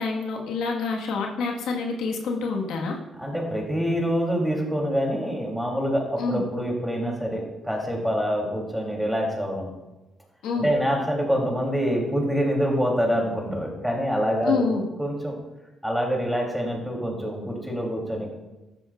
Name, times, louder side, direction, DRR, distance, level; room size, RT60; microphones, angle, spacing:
voice 1, 0.0-3.0 6.2-6.4 10.4-10.7 14.4-14.8, left 4 dB, 85° left, 0 dB, 1.6 m, -27 dB
voice 2, 3.2-9.7 10.6-14.7 15.0-15.3 15.8-18.3, equal, ahead, -1 dB, 3.3 m, -26 dB
13.5 x 10.5 x 2.5 m, 1.1 s
cardioid pair, 90°, 0 cm